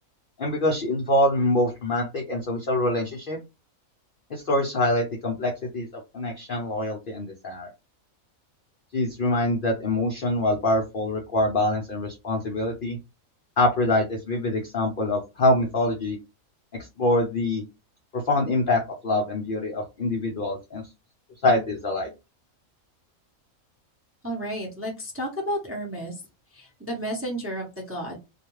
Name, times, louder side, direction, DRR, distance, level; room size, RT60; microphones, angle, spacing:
voice 1, 0.4-3.4 4.3-5.9 6.1-7.7 8.9-13.0 13.6-16.2 16.8-17.6 18.1-20.8 21.4-22.1, left 1 dB, 60° left, 1 dB, 0.5 m, -25 dB
voice 2, 24.2-26.1 26.5-28.2, equal, 15° right, -2 dB, 0.5 m, -32 dB
2.4 x 2.2 x 3.0 m, 0.26 s
omnidirectional pair, 1.5 m